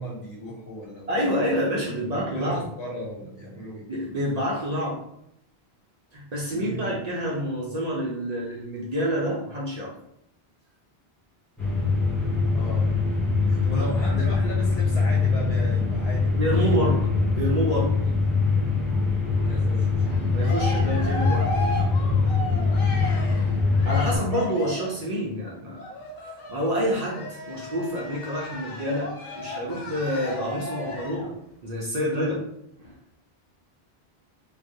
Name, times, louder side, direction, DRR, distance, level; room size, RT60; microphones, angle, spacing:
voice 1, 0.0-1.6 2.0-3.8 6.5-7.0 12.5-12.9 13.5-16.9 19.4-20.1 22.5-23.5, equal, 80° left, -3 dB, 1.1 m, -37 dB
voice 2, 1.1-2.6 3.9-5.0 6.1-9.9 13.6-14.2 16.4-17.0 17.4-17.9 20.3-21.5 23.8-25.8 26.5-31.3 31.6-32.4 32.8-32.9, equal, 50° right, -4 dB, 0.5 m, -28 dB
sound 1, 11.6-24.2, left 4 dB, ahead, 0.4 m, -23 dB
Cheering, 20.0-25.0 25.8-31.3, left 1 dB, 55° left, 0.6 m, -35 dB
2.2 x 2.0 x 2.7 m, 0.76 s
omnidirectional pair, 1.0 m